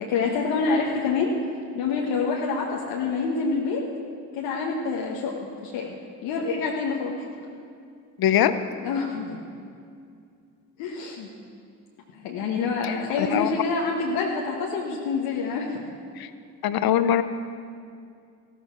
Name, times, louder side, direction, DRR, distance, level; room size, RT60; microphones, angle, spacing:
voice 1, 0.0-1.3 1.7-3.8 4.3-5.4 5.6-5.9 6.2-7.1 8.8-9.4 10.8-11.3 12.1-16.0, left 4 dB, 70° left, -2 dB, 1.4 m, -27 dB
voice 2, 8.2-8.5 12.8-13.5 16.2-16.3 16.6-17.2, left 11 dB, 50° left, 12 dB, 0.9 m, -22 dB
14.5 x 13.5 x 4.6 m, 2.4 s
hypercardioid pair, 45°, 45 cm